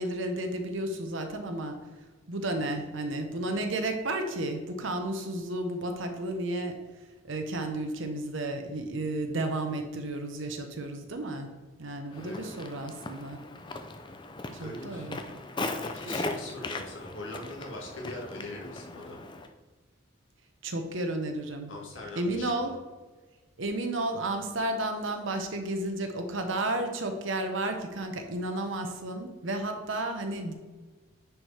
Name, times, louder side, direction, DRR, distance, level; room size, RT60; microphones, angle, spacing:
voice 1, 0.0-1.8 2.3-6.8 7.2-11.5 11.8-13.4 14.6-15.2 20.6-21.7 22.2-22.7 23.6-30.5, right 1 dB, 65° right, 5 dB, 1.0 m, -32 dB
voice 2, 12.1-12.5 14.3-15.1 15.8-19.2 21.7-22.7, left 2 dB, 65° left, -2 dB, 1.8 m, -41 dB
Walk footsteps, 12.1-19.5, left 2 dB, 20° left, 0.5 m, -38 dB
10.0 x 4.8 x 3.4 m, 1.3 s
head